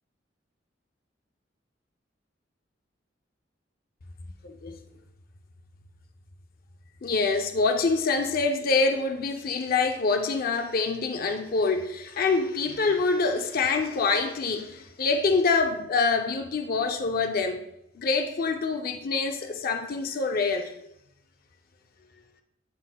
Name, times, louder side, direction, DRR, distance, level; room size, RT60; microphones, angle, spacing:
voice 1, 4.4-4.8 7.0-17.6 17.9-20.7, left 4 dB, 55° left, 5 dB, 0.5 m, -25 dB
11.5 x 4.1 x 2.2 m, 0.80 s
head